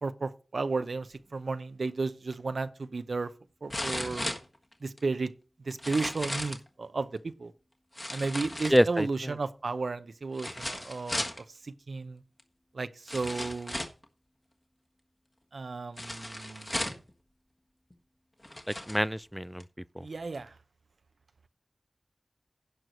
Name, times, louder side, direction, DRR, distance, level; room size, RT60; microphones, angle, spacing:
voice 1, 0.0-3.3 3.6-4.3 4.8-5.3 5.7-7.5 8.1-11.2 11.9-12.2 12.7-13.8 15.5-16.9 20.0-20.5, right 3 dB, 80° right, 0.6 m, -33 dB
sound 1, 2.3-2.4 3.7-5.0 5.7-6.7 7.9-9.1 10.3-11.4 12.4-12.5 13.1-14.0 16.0-17.1 17.9-18.0 18.4-19.0 19.6-19.7, left 1 dB, 25° left, 1.5 m, -36 dB
voice 2, 8.7-9.3 18.7-19.6 20.0-20.1, equal, ahead, 0.4 m, -26 dB
11.0 x 4.6 x 6.5 m
wide cardioid pair, 55°, 0 cm